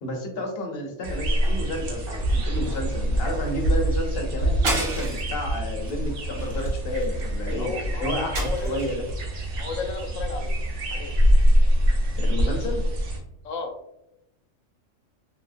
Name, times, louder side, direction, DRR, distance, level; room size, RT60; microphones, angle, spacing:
voice 1, 0.0-7.7 8.0-9.0 12.2-12.8, left 1 dB, 55° left, 2 dB, 0.8 m, -31 dB
sound 1, 1.0-13.2, equal, 65° right, 1.0 m, -24 dB
sound 2, 4.6-5.4 5.8-6.0 6.4-7.3 8.3-9.1, right 1 dB, 45° right, 0.4 m, -31 dB
voice 2, 7.6-8.8 9.6-10.6 10.9-11.1 13.4-13.7, left 4 dB, 85° left, 4 dB, 1.0 m, -33 dB
2.8 x 2.8 x 2.4 m, 0.80 s
omnidirectional pair, 1.3 m